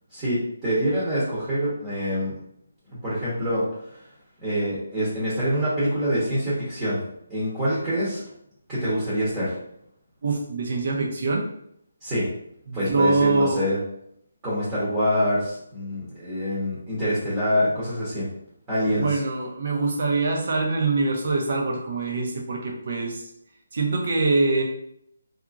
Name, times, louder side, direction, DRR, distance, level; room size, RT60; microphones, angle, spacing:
voice 1, 0.1-2.3 3.0-3.6 3.9-4.0 4.4-7.0 7.3-8.2 8.7-9.6 12.0-12.3 12.7-13.8 14.4-18.3 18.7-19.2, equal, 15° right, -10 dB, 0.9 m, -25 dB
voice 2, 10.2-11.5 12.7-13.6 18.9-23.2 23.7-24.6, right 3 dB, 50° right, 0 dB, 0.7 m, -24 dB
2.8 x 2.5 x 2.5 m, 0.73 s
hypercardioid pair, 165°, 0 cm